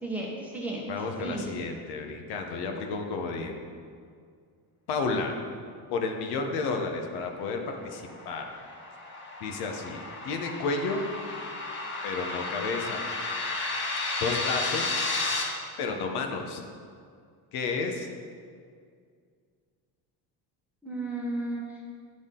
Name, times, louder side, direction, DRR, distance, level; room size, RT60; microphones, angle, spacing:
voice 1, 0.0-0.9 1.2-1.5 20.8-21.8, right 2 dB, 5° right, -4 dB, 1.0 m, -33 dB
voice 2, 0.9-3.6 4.9-5.3 5.9-8.4 9.4-11.0 12.0-13.0 14.2-15.0 15.8-16.6 17.5-18.1, left 4 dB, 70° left, 3 dB, 1.1 m, -31 dB
sound 1, 7.7-15.4, left 3 dB, 30° left, 1.0 m, -33 dB
10.5 x 6.2 x 3.8 m, 2.1 s
cardioid pair, 170°, 40 cm